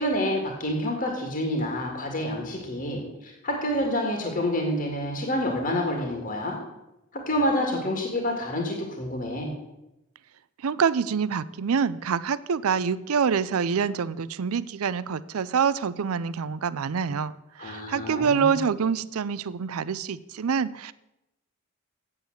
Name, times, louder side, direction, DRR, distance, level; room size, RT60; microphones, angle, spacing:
voice 1, 0.0-6.6 7.1-9.5 17.6-18.5, left 1 dB, 40° left, 1 dB, 1.9 m, -28 dB
voice 2, 10.6-17.3 17.6-20.9, right 6 dB, 80° right, 18 dB, 0.5 m, -26 dB
8.6 x 7.2 x 7.7 m, 0.91 s
head